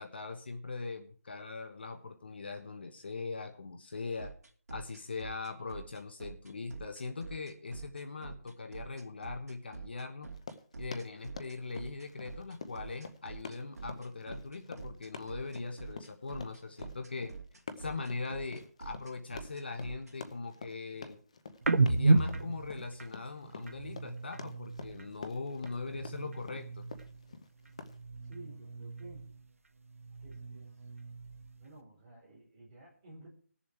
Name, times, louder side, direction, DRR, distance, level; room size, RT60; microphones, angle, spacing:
voice 1, 0.0-4.3 4.7-10.3 10.8-17.3 17.8-21.2 21.9-26.9, left 3 dB, 40° left, 5 dB, 1.3 m, -41 dB
sound 1, 4.2-20.1, right 5 dB, 85° right, 2.7 m, -46 dB
Run, 10.3-28.0, left 4 dB, 25° left, 0.8 m, -48 dB
sound 2, 21.6-25.2 25.5-27.3 27.6-29.5 29.8-31.7, right 3 dB, 60° right, 1.3 m, -33 dB
voice 2, 28.2-29.3 30.2-30.8 31.6-33.3, right 2 dB, 20° right, -4 dB, 4.1 m, -53 dB
18.5 x 7.2 x 4.6 m, 0.44 s
hypercardioid pair, 180°, 8 cm